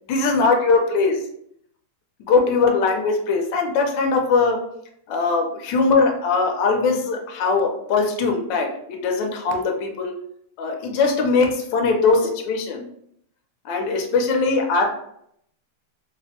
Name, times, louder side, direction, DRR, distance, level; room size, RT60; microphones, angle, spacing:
voice 1, 0.1-1.2 2.3-4.6 5.1-10.1 10.6-12.9 13.6-14.8, left 4 dB, 70° left, 3 dB, 1.2 m, -20 dB
3.3 x 2.1 x 2.7 m, 0.72 s
omnidirectional pair, 2.3 m